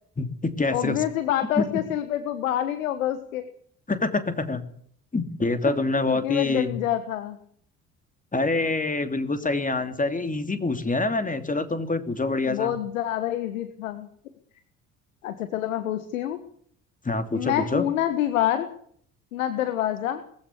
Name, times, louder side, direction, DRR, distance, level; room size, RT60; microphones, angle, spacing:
voice 1, 0.2-1.0 1.6-1.7 3.9-4.6 5.1-6.8 8.3-12.8 17.0-17.8, left 3 dB, 20° left, 9 dB, 2.9 m, -26 dB
voice 2, 0.7-3.4 5.6-5.7 6.1-7.4 12.4-14.1 15.2-16.4 17.3-18.7 19.3-20.2, left 11 dB, 80° left, 10 dB, 1.4 m, -27 dB
20.5 x 15.5 x 8.3 m, 0.63 s
figure-of-eight pair, 50°, 40 cm